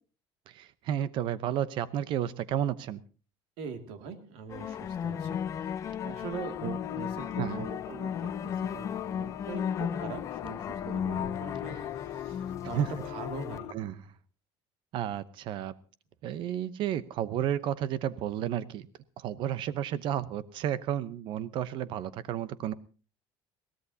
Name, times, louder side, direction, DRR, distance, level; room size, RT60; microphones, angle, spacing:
voice 1, 0.5-3.0 6.6-6.8 7.4-7.6 12.7-12.9 13.7-14.0 14.9-15.7 16.2-18.9 19.2-22.7, right 10 dB, 50° right, 16 dB, 0.9 m, -32 dB
voice 2, 3.6-6.6 6.9-13.8, right 5 dB, 75° right, 7 dB, 2.3 m, -43 dB
sound 1, 4.5-13.6, left 8 dB, 30° left, 0.7 m, -35 dB
sound 2, 6.3-13.7, left 16 dB, 70° left, 0.8 m, -43 dB
22.0 x 17.0 x 2.8 m, 0.37 s
cardioid pair, 165°, 11 cm